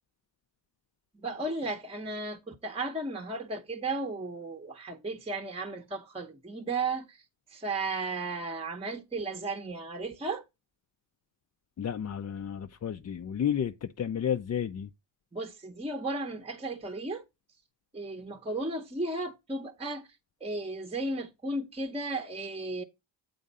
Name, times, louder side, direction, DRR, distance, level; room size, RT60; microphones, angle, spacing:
voice 1, 1.1-7.2 7.5-10.4 15.3-17.2 17.9-20.1 20.4-22.8, right 2 dB, 15° right, 0.8 m, -34 dB
voice 2, 11.8-14.9, left 8 dB, 35° left, 0.5 m, -32 dB
8.5 x 3.7 x 5.4 m
cardioid pair, 80°, 46 cm